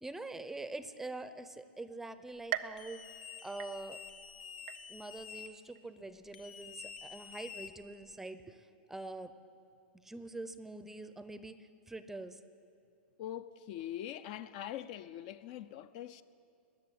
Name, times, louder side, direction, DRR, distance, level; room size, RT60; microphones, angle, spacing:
voice 1, 0.0-3.1 3.4-4.0 4.9-9.3 9.9-12.4, right 2 dB, 5° right, 0.6 m, -45 dB
sound 1, 2.5-4.2 4.7-5.3 5.8-5.9 6.8-6.9, right 12 dB, 65° right, 0.6 m, -42 dB
sound 2, 2.8-5.5 6.3-8.1, left 7 dB, 70° left, 1.3 m, -49 dB
voice 2, 13.2-16.2, left 11 dB, 50° left, 0.5 m, -43 dB
19.5 x 6.8 x 10.0 m
hypercardioid pair, 135°, 6 cm